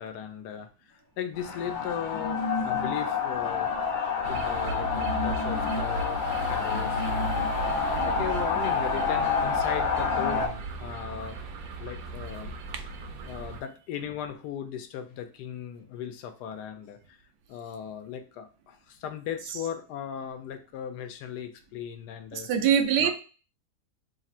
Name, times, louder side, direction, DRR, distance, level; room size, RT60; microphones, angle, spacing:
voice 1, 0.0-3.7 4.3-11.4 11.8-12.5 13.2-17.2 17.5-22.5 23.0-23.1, left 9 dB, 80° left, 1.2 m, -37 dB
sound 1, 1.4-10.5, left 5 dB, 55° left, 0.5 m, -28 dB
sound 2, 4.2-13.6, right 2 dB, 65° right, 1.0 m, -36 dB
voice 2, 22.3-23.1, right 8 dB, 90° right, 1.2 m, -24 dB
3.4 x 2.4 x 4.2 m
omnidirectional pair, 1.7 m